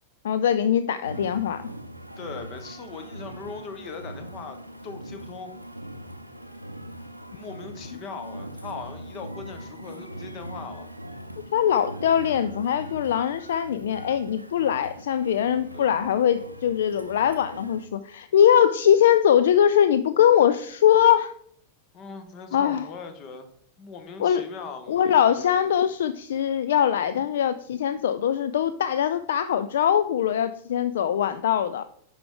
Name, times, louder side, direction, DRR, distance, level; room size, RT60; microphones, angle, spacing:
voice 1, 0.2-1.6 11.5-21.3 22.5-22.9 24.2-24.4 24.9-31.8, left 9 dB, 60° left, 13 dB, 0.3 m, -22 dB
sound 1, 1.0-17.9, right 1 dB, 90° right, 0.5 m, -40 dB
voice 2, 2.2-4.6 4.8-5.5 7.3-10.9 15.7-16.0 21.9-23.5 23.8-25.6 27.2-27.3, left 5 dB, 35° left, 8 dB, 1.2 m, -40 dB
10.5 x 4.7 x 3.8 m, 0.66 s
figure-of-eight pair, 90°, 0 cm